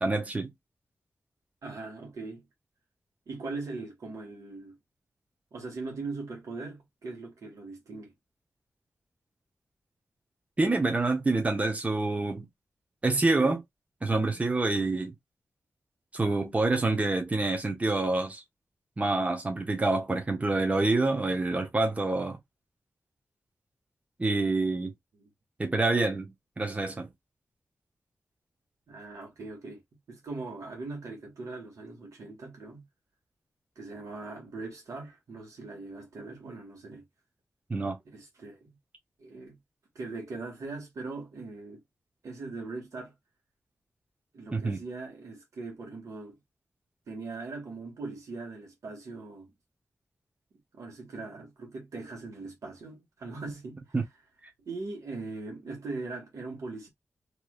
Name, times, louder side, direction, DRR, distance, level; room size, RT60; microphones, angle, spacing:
voice 1, 0.0-0.5 10.6-12.5 13.0-13.6 14.0-15.1 16.1-18.4 19.0-22.4 24.2-24.9 25.6-27.1 37.7-38.0 44.5-44.8 53.9-54.0, right 2 dB, 25° right, 0.9 m, -27 dB
voice 2, 1.6-2.4 3.3-4.8 5.5-8.1 25.1-25.3 28.9-29.8 30.1-32.8 33.7-37.0 38.0-38.8 39.2-39.6 39.9-41.8 42.2-43.1 44.3-46.4 47.1-49.5 50.7-53.8 54.6-56.9, right 3 dB, 85° right, 1.7 m, -40 dB
3.3 x 3.0 x 2.4 m
wide cardioid pair, 85°, 5 cm